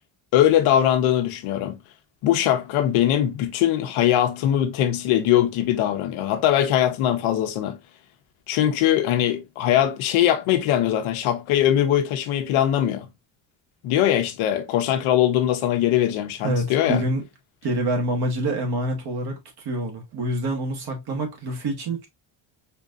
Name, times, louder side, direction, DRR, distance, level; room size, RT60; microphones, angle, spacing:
voice 1, 0.3-1.8 2.2-7.8 8.5-13.1 13.8-17.0, left 11 dB, 90° left, 0.9 m, -21 dB
voice 2, 16.4-17.2 17.6-22.1, right 1 dB, 50° right, 1.3 m, -26 dB
4.4 x 2.8 x 2.4 m
cardioid pair, 130°, 48 cm